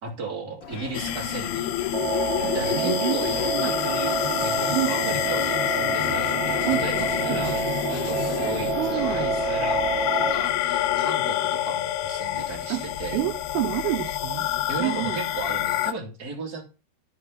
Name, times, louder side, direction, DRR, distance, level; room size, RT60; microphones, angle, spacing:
voice 1, 0.0-1.8 2.5-4.1 4.4-13.2 14.7-16.6, right 3 dB, 25° right, 2.7 m, -36 dB
Crowd, 0.6-9.5, left 7 dB, 65° left, 2.2 m, -38 dB
sound 1, 0.9-15.9, left 12 dB, 80° left, 2.5 m, -27 dB
sound 2, 1.9-10.3, right 5 dB, 55° right, 2.4 m, -28 dB
voice 2, 2.4-3.8 4.7-5.2 6.7-7.6 8.7-9.3 12.7-12.9 13.1-14.5 14.8-15.2, right 15 dB, 80° right, 2.5 m, -29 dB
14.5 x 4.9 x 4.1 m
omnidirectional pair, 4.9 m